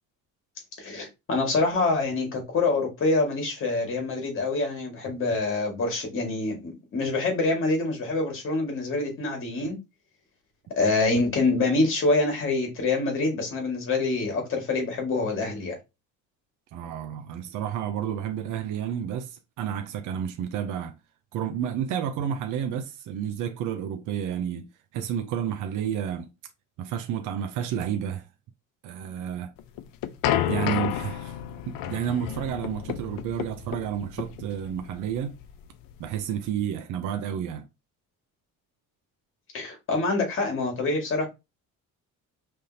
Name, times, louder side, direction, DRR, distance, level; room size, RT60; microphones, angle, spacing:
voice 1, 0.8-9.8 10.8-15.8 39.5-41.3, left 3 dB, 40° left, 2.0 m, -26 dB
voice 2, 16.7-20.9 21.3-26.3 26.8-28.2 28.8-29.5 30.5-31.4 31.7-35.4 36.0-37.7, right 9 dB, 65° right, 0.6 m, -31 dB
sound 1, 29.6-36.4, left 11 dB, 80° left, 0.6 m, -31 dB
5.4 x 3.4 x 2.8 m
cardioid pair, 165°, 34 cm